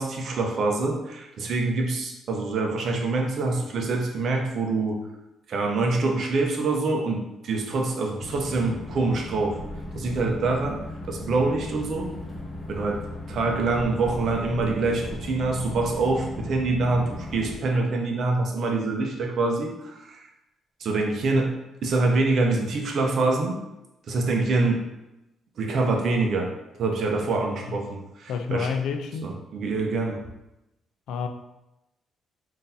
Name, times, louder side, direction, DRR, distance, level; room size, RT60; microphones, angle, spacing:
voice 1, 0.0-5.0 5.5-9.6 10.0-12.1 12.7-20.3 20.8-23.6 24.1-24.8 25.6-26.5 26.8-28.7 29.2-30.2, right 3 dB, 60° right, 0.6 m, -25 dB
sound 1, 8.2-17.6, left 1 dB, 35° left, 0.8 m, -37 dB
voice 2, 28.3-29.3 31.1-31.3, left 6 dB, 85° left, 0.3 m, -29 dB
3.7 x 2.6 x 2.7 m
cardioid pair, 90°, 0 cm